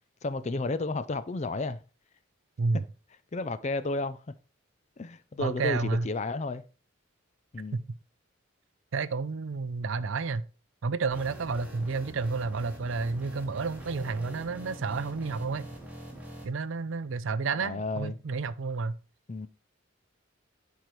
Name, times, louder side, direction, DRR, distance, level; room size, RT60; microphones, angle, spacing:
voice 1, 0.2-1.8 2.7-2.8 3.3-4.2 5.0-6.6 7.5-7.8 17.5-18.2 19.3-19.5, left 3 dB, 30° left, 0.4 m, -32 dB
voice 2, 5.4-6.1 7.7-8.0 8.9-10.4 10.8-15.7 16.4-19.0, right 4 dB, 65° right, 0.5 m, -31 dB
sound 1, 11.1-16.5, right 1 dB, 5° right, 1.6 m, -44 dB
10.5 x 4.7 x 3.2 m
head